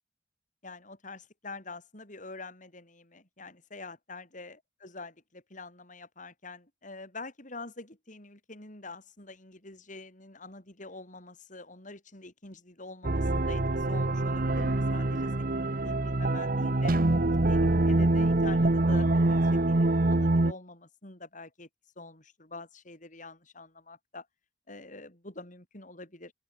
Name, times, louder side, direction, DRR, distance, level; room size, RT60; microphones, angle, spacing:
voice 1, 0.6-16.9 17.5-21.7 22.0-24.3 24.7-26.3, left 3 dB, 45° left, 7.1 m, -46 dB
sound 1, 13.0-20.5, right 2 dB, 55° right, 1.1 m, -25 dB
open air
head